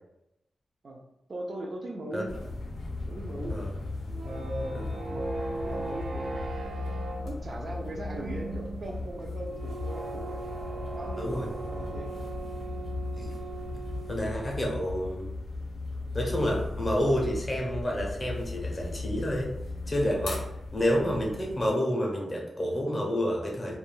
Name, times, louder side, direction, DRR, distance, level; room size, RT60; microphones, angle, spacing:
voice 1, 1.3-2.4 3.1-3.6 4.2-6.8 7.2-10.4 10.9-12.1, right 1 dB, 45° right, 1 dB, 0.3 m, -39 dB
sound 1, 2.3-21.7, left 2 dB, 90° left, 0.5 m, -37 dB
sound 2, 3.9-15.2, right 3 dB, 90° right, 0.6 m, -39 dB
voice 2, 11.2-11.5 13.2-13.4 14.1-15.3 16.1-19.5 19.9-20.4 20.7-23.8, equal, 20° left, -1 dB, 0.6 m, -29 dB
2.3 x 2.2 x 3.0 m, 0.86 s
wide cardioid pair, 165°, 0 cm